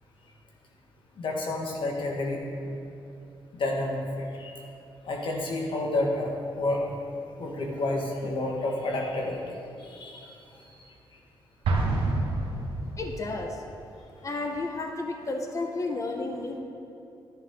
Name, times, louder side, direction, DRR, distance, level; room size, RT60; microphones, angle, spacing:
voice 1, 1.2-2.8 3.5-4.5 5.1-6.8 7.4-9.4 9.8-10.3, left 2 dB, 65° left, 0 dB, 1.8 m, -30 dB
Explosion, 11.6-13.3, right 2 dB, 80° right, 1.3 m, -27 dB
voice 2, 13.0-13.6 14.2-16.6, left 2 dB, 35° left, 3 dB, 1.1 m, -32 dB
11.0 x 9.9 x 3.8 m, 2.8 s
cardioid pair, 80°, 9 cm